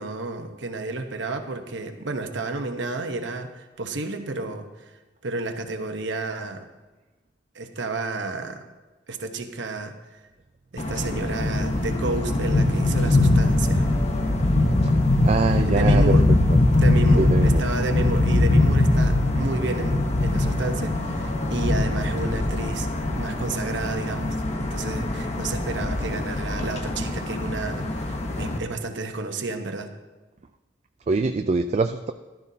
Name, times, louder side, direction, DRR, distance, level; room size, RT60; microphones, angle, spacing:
voice 1, 0.0-5.0 5.2-6.7 7.5-8.6 9.1-10.2 10.7-14.3 15.5-16.3 16.7-29.9, right 3 dB, 70° right, 6 dB, 1.0 m, -31 dB
sound 1, 10.8-28.6, left 2 dB, 40° left, 1.0 m, -22 dB
voice 2, 15.2-16.0 17.2-17.6 31.1-32.1, right 3 dB, 35° right, 7 dB, 0.4 m, -23 dB
15.0 x 12.0 x 2.8 m, 1.2 s
head